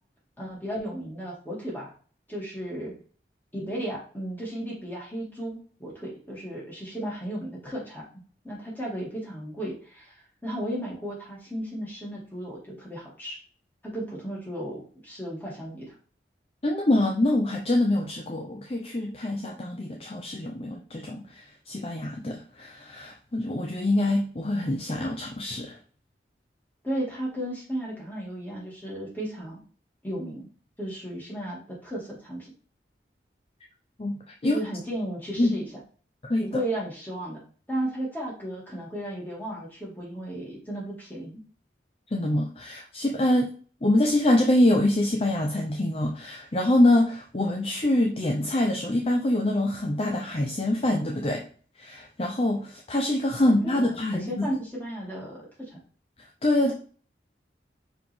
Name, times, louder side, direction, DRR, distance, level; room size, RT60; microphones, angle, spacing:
voice 1, 0.4-1.9 2.3-2.9 3.5-13.4 13.8-15.9 26.8-29.6 30.0-30.5 30.8-32.5 34.4-35.7 36.4-37.4 37.7-41.4 53.4-55.8, right 1 dB, 10° left, -5 dB, 2.5 m, -34 dB
voice 2, 16.6-25.8 34.0-34.6 35.4-35.6 36.3-36.6 42.1-43.5 43.8-51.4 51.8-54.5 56.4-56.7, left 1 dB, 35° left, 1 dB, 0.6 m, -25 dB
5.7 x 4.8 x 3.6 m, 0.42 s
head